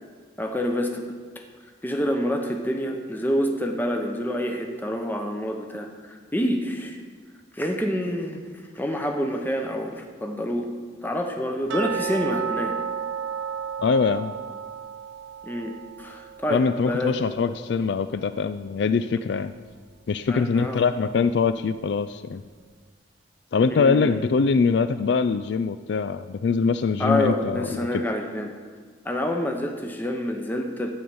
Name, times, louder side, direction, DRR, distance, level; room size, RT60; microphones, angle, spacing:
voice 1, 0.4-1.1 1.8-7.0 7.5-8.4 8.7-10.7 11.0-12.7 15.4-15.7 16.0-17.2 20.3-20.8 23.7-24.2 27.0-28.5 29.0-31.0, equal, 10° left, 3 dB, 0.8 m, -27 dB
sound 1, 11.7-18.6 18.8-18.9 19.4-19.5 20.1-20.2, right 7 dB, 80° right, 0.5 m, -33 dB
voice 2, 13.8-14.3 16.5-19.5 20.1-22.4 23.5-28.0, left 5 dB, 65° left, 12 dB, 0.3 m, -23 dB
12.5 x 8.7 x 5.5 m, 1.6 s
head